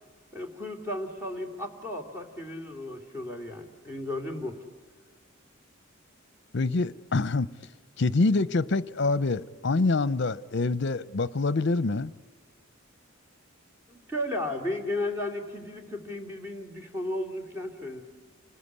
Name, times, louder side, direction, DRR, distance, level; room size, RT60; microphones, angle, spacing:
voice 1, 0.3-4.6 13.9-18.0, left 1 dB, 10° right, 3.1 m, -34 dB
voice 2, 6.5-7.5 8.0-12.1, left 3 dB, 55° left, 0.7 m, -26 dB
29.0 x 20.5 x 9.7 m
head